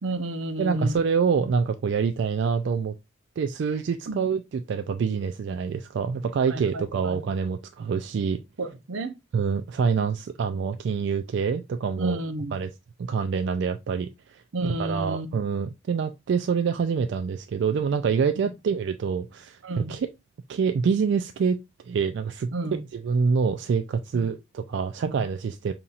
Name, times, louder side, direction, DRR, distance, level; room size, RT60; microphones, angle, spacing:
voice 1, 0.0-1.0 4.1-4.2 6.5-7.2 8.6-9.2 12.0-12.6 14.5-15.4 18.4-18.5 19.6-20.0 22.5-22.9 24.1-24.3 25.0-25.2, right 2 dB, 85° right, 0.7 m, -31 dB
voice 2, 0.6-2.9 3.4-4.4 4.7-8.4 9.3-12.2 12.5-12.7 13.0-20.1 20.5-21.6 21.8-25.7, right 6 dB, 65° right, 0.3 m, -26 dB
5.4 x 2.8 x 2.4 m
head